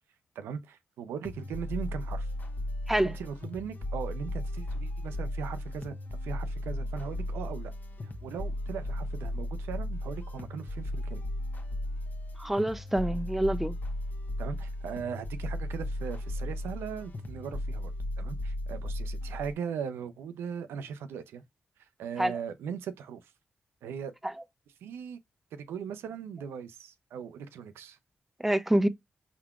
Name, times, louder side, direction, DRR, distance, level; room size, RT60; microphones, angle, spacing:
voice 1, 0.4-2.3 3.1-5.9 6.2-7.7 8.0-11.2 14.4-17.9 18.2-21.4 22.0-23.3 23.8-24.1 24.8-25.2 25.5-28.0, right 7 dB, 90° right, 0.5 m, -39 dB
sound 1, 1.2-19.5, left 1 dB, 50° left, 1.0 m, -35 dB
voice 2, 12.4-13.8 22.2-22.3 28.4-28.9, right 1 dB, 5° right, 0.6 m, -26 dB
4.6 x 3.7 x 2.3 m
supercardioid pair, 50°, 4 cm